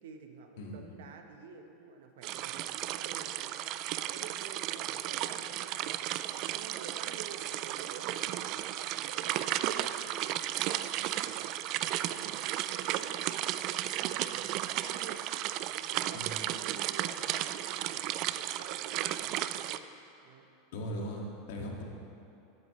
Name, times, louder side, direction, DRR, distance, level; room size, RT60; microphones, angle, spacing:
voice 1, 0.0-3.5 4.1-6.3 6.5-15.2 15.6-19.8 20.2-20.5, right 5 dB, 75° right, 5 dB, 1.1 m, -50 dB
sound 1, 2.2-19.8, right 13 dB, 55° right, 0.4 m, -34 dB
voice 2, 20.7-21.8, equal, 70° left, -1 dB, 2.1 m, -38 dB
17.0 x 9.0 x 3.2 m, 2.8 s
hypercardioid pair, 110°, 0 cm